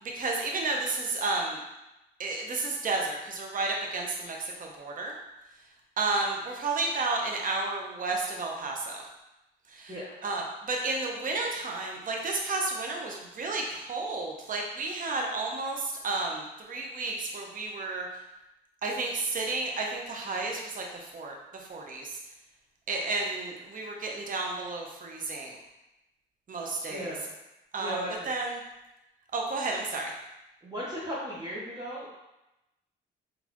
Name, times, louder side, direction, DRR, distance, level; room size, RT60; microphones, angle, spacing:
voice 1, 0.0-1.6 2.2-5.1 6.0-9.0 9.7-10.0 10.2-18.1 18.8-20.8 21.1-22.2 22.9-25.6 26.5-27.1 27.7-28.6 29.3-30.1, right 3 dB, 45° right, 0 dB, 0.8 m, -32 dB
voice 2, 27.8-28.3 30.6-32.1, equal, 20° right, -7 dB, 1.0 m, -36 dB
4.1 x 3.3 x 3.0 m, 0.93 s
cardioid pair, 90°, 20 cm